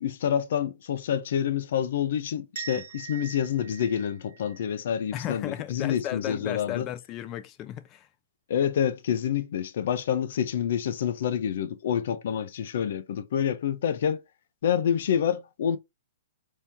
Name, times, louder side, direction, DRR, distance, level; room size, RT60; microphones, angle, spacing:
voice 1, 0.0-6.9 8.5-14.2 14.6-15.8, left 9 dB, 65° left, 0.8 m, -27 dB
sound 1, 2.5-5.3, right 8 dB, 70° right, 1.1 m, -43 dB
voice 2, 5.1-8.1, left 12 dB, 25° left, 0.7 m, -35 dB
4.4 x 2.9 x 3.5 m
hypercardioid pair, 145°, 0 cm